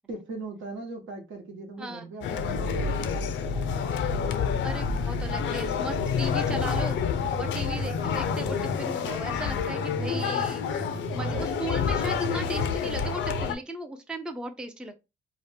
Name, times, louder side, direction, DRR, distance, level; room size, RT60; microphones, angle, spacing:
voice 1, 0.1-3.9 7.5-7.9, right 2 dB, 75° right, 1.0 m, -40 dB
sound 1, 2.2-13.6, left 8 dB, 70° left, 0.5 m, -29 dB
sound 2, 2.4-13.5, right 3 dB, 30° right, 1.1 m, -36 dB
voice 2, 4.6-7.0 7.4-10.8 11.1-15.0, right 1 dB, 5° right, 0.4 m, -37 dB
2.8 x 2.0 x 3.2 m
cardioid pair, 90°, 20 cm